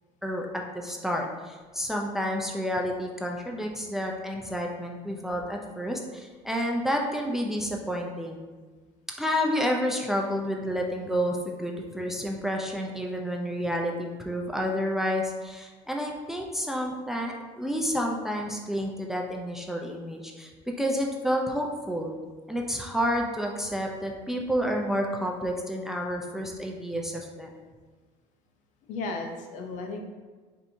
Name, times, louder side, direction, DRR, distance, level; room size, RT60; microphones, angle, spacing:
voice 1, 0.7-8.4 9.2-20.5 20.8-22.1 22.5-27.5, equal, 5° right, 0 dB, 0.4 m, -30 dB
voice 2, 28.9-30.0, left 3 dB, 65° left, 3 dB, 0.6 m, -35 dB
4.4 x 2.6 x 2.6 m, 1.4 s
cardioid pair, 115°, 14 cm